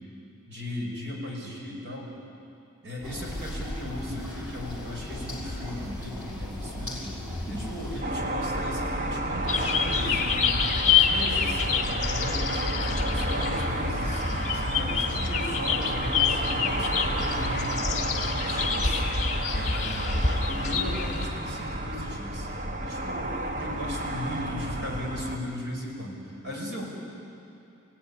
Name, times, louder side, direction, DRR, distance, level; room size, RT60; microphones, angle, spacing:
voice 1, 0.5-2.1 2.8-7.2 7.5-10.6 10.9-14.2 14.5-16.9 17.2-19.0 19.5-20.2 20.5-22.5 22.8-23.3 23.6-26.8, equal, 55° right, -1 dB, 6.0 m, -37 dB
sound 1, 3.0-8.0, left 1 dB, 5° right, 6.6 m, -36 dB
sound 2, 8.0-25.4, right 1 dB, 40° right, 1.6 m, -31 dB
sound 3, 9.5-21.3, left 5 dB, 40° left, 2.5 m, -27 dB
29.0 x 17.0 x 10.0 m, 2.7 s
head